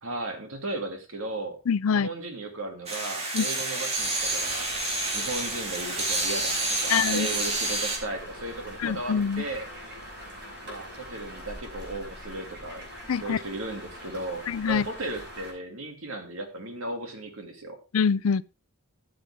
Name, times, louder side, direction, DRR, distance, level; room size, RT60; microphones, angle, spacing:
voice 1, 0.0-1.6 1.9-4.7 5.1-9.7 10.6-12.9 13.2-17.8, right 2 dB, 75° right, 2.4 m, -36 dB
voice 2, 1.7-2.1 3.3-3.5 6.9-7.3 8.8-9.4 13.1-13.4 14.5-14.9 17.9-18.4, left 6 dB, 80° left, 0.4 m, -24 dB
sound 1, 2.9-8.0, right 2 dB, 30° right, 2.4 m, -29 dB
sound 2, 4.0-15.5, equal, 55° right, 5.5 m, -43 dB
13.5 x 7.8 x 3.6 m
head